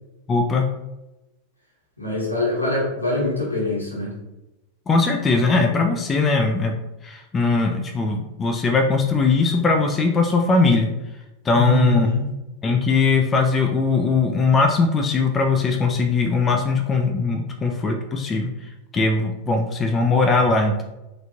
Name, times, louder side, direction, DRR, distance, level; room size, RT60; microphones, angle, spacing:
voice 1, 0.3-0.7 4.9-6.7 7.0-10.9 11.5-12.1 12.6-18.5 18.9-20.8, left 4 dB, 20° left, 4 dB, 0.3 m, -20 dB
voice 2, 2.0-4.2 11.5-12.3, left 1 dB, 85° left, -5 dB, 1.1 m, -24 dB
3.2 x 2.5 x 2.8 m, 0.97 s
figure-of-eight pair, 90°, 0 cm